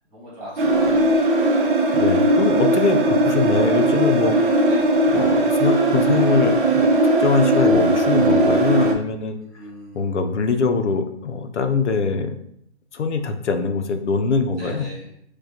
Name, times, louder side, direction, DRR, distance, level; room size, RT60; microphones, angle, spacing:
voice 1, 0.1-1.8 4.6-5.0 9.3-10.0 14.6-15.1, equal, 20° right, -7 dB, 1.4 m, -39 dB
sound 1, 0.6-8.9, right 1 dB, 50° right, 0.6 m, -18 dB
voice 2, 1.9-4.7 5.1-6.9 7.2-9.4 9.9-12.4 12.9-14.9, left 4 dB, 80° left, 7 dB, 0.6 m, -23 dB
4.6 x 2.3 x 2.8 m, 0.71 s
hypercardioid pair, 145°, 34 cm